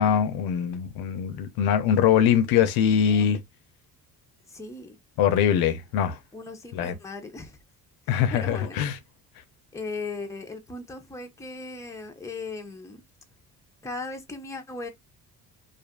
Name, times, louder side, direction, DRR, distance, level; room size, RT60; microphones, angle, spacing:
voice 1, 0.0-3.4 5.2-6.2 6.7-6.9 8.1-8.9, left 8 dB, 85° left, 0.8 m, -22 dB
voice 2, 3.1-3.4 4.5-5.0 6.3-7.6 8.1-8.8 9.7-13.0 13.8-14.9, left 3 dB, 10° left, 0.7 m, -37 dB
2.6 x 2.5 x 2.3 m
cardioid pair, 110°, 36 cm